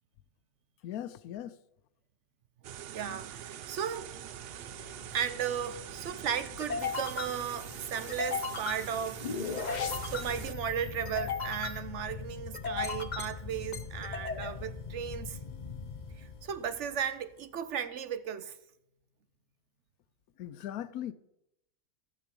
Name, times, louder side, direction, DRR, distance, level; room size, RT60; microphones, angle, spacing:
voice 1, 0.8-1.6 20.4-21.1, left 11 dB, 80° left, 1.1 m, -39 dB
sound 1, 2.6-10.5, right 10 dB, 80° right, 0.5 m, -44 dB
voice 2, 2.9-4.1 5.1-9.5 9.8-15.4 16.2-18.5, right 8 dB, 60° right, 0.9 m, -35 dB
sound 2, 4.3-17.0, left 5 dB, 40° left, 0.7 m, -38 dB
Cricket, 6.8-11.8, left 3 dB, 25° left, 1.4 m, -53 dB
13.5 x 7.4 x 5.3 m
omnidirectional pair, 1.6 m